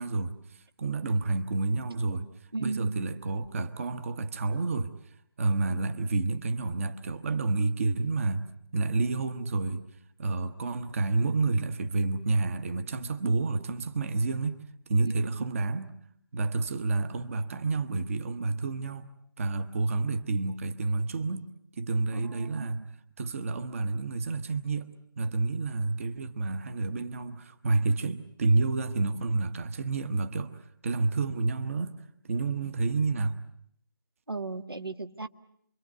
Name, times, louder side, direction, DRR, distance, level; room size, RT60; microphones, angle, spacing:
voice 1, 0.0-8.5 8.7-9.8 10.2-14.6 14.9-15.9 16.3-19.1 19.4-21.5 21.8-22.8 23.2-24.9 25.2-33.4, right 3 dB, 35° right, 1.1 m, -29 dB
voice 2, 2.5-3.0 15.1-15.2 22.1-22.9 34.3-35.3, right 3 dB, 80° right, 1.5 m, -35 dB
28.0 x 23.5 x 8.2 m
figure-of-eight pair, 150°, 12 cm